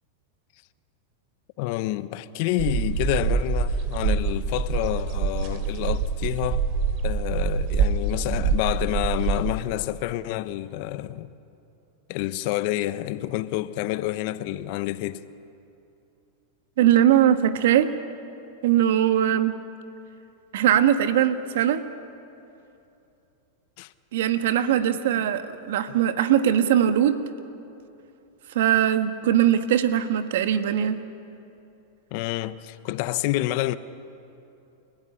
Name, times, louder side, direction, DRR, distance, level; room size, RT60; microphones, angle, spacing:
voice 1, 1.6-6.7 7.0-11.3 12.1-15.2 23.8-23.9 24.9-25.2 25.9-26.0 32.1-33.8, left 15 dB, 55° left, 1.0 m, -28 dB
sound 1, 2.6-9.5, right 5 dB, 50° right, 3.0 m, -25 dB
voice 2, 16.8-17.9 18.6-19.6 20.5-21.8 24.1-27.2 28.5-31.0, right 10 dB, 70° right, 1.5 m, -21 dB
29.5 x 15.5 x 10.0 m
hypercardioid pair, 110°, 0 cm